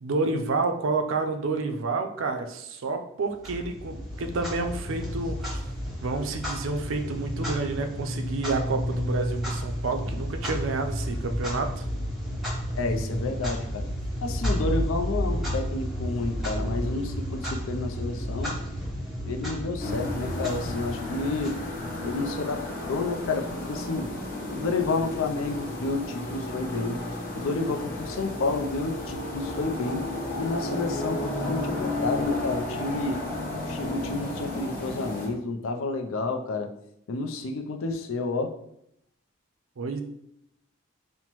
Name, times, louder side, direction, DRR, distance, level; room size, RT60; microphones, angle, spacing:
voice 1, 0.0-5.7 6.0-11.9 39.8-40.0, right 3 dB, 65° right, 5 dB, 0.4 m, -29 dB
Clock, 3.4-22.1, equal, ahead, 0.9 m, -32 dB
voice 2, 12.8-13.9 14.2-18.5 19.2-21.6 22.0-24.1 24.5-27.0 27.4-30.0 30.4-33.2 33.7-36.7 37.1-38.5, left 3 dB, 75° left, 5 dB, 0.5 m, -30 dB
sound 1, 19.8-35.3, left 2 dB, 40° left, 0.9 m, -33 dB
5.5 x 2.1 x 3.0 m, 0.77 s
head